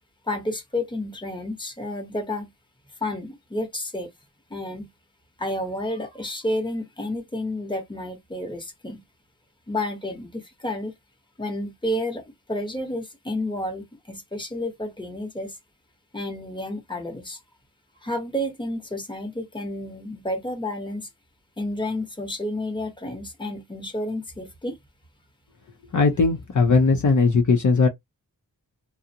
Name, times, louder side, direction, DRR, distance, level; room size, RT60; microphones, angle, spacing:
voice 1, 0.3-2.5 3.0-4.1 4.5-4.9 5.4-9.0 9.7-10.9 11.4-12.2 12.5-15.5 16.1-17.4 18.0-21.1 21.6-24.8, left 1 dB, 10° left, 1.0 m, -30 dB
voice 2, 25.9-27.9, left 4 dB, 50° left, 0.6 m, -18 dB
2.5 x 2.0 x 2.7 m
wide cardioid pair, 80°, 39 cm